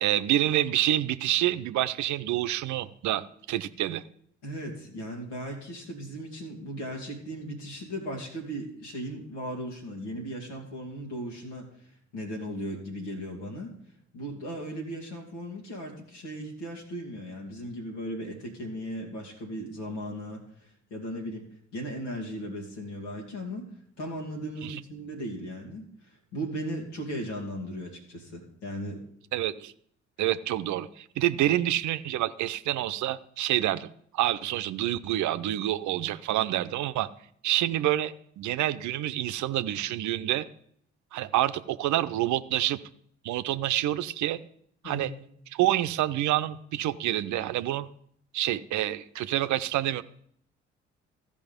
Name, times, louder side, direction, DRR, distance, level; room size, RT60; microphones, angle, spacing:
voice 1, 0.0-4.0 24.6-24.8 29.3-29.7 30.2-33.9 34.1-37.1 37.4-40.5 41.1-42.8 43.2-44.4 44.8-45.1 45.5-47.9 48.3-50.0, right 13 dB, 60° right, 13 dB, 0.7 m, -27 dB
voice 2, 4.4-13.8 14.1-23.7 24.0-29.0 44.8-45.1, equal, 80° left, 0 dB, 2.2 m, -37 dB
15.0 x 5.3 x 5.2 m, 0.66 s
figure-of-eight pair, 45°, 34 cm